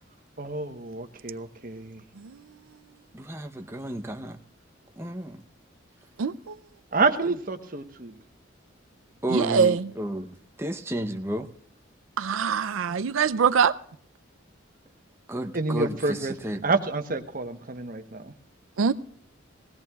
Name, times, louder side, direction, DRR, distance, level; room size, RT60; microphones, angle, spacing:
voice 1, 0.4-2.0 6.9-8.2 12.9-13.0 15.5-18.3, right 3 dB, 45° right, 1.1 m, -28 dB
voice 2, 3.1-4.4 5.0-5.4 9.2-10.3 10.6-11.5 15.3-16.2 16.4-16.6, right 1 dB, 10° right, 0.7 m, -31 dB
voice 3, 6.2-6.6 9.3-9.9 12.2-13.8 18.8-18.9, right 6 dB, 90° right, 0.5 m, -23 dB
19.5 x 16.5 x 2.4 m
head